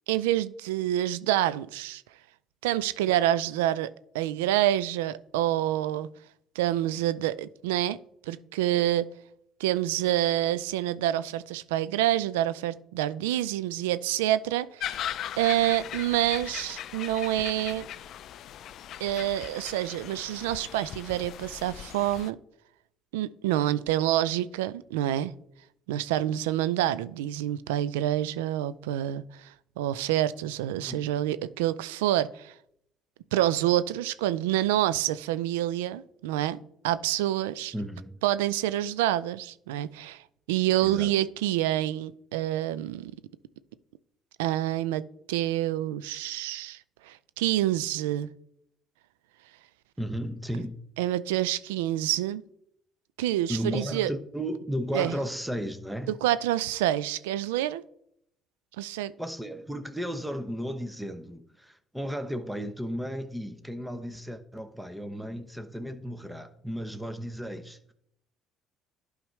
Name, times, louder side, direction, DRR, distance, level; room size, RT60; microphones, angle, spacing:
voice 1, 0.1-2.0 2.6-6.1 6.6-8.0 8.3-9.1 9.6-15.1 15.4-17.9 19.0-22.4 23.1-25.3 25.9-29.5 29.8-32.5 33.3-36.6 36.8-37.7 38.2-40.2 40.5-43.1 44.4-45.0 45.3-46.8 47.0-48.3 51.0-52.4 53.2-54.1 54.9-55.2 56.2-57.8 58.8-59.1, right 13 dB, 90° right, 0.3 m, -27 dB
sound 1, 14.8-22.3, left 11 dB, 65° left, 0.3 m, -39 dB
voice 2, 30.8-31.1 37.7-38.1 40.8-41.1 50.0-50.8 53.5-56.2 59.2-67.9, equal, 5° right, 0.9 m, -34 dB
11.5 x 4.8 x 3.2 m
supercardioid pair, 65°, 0 cm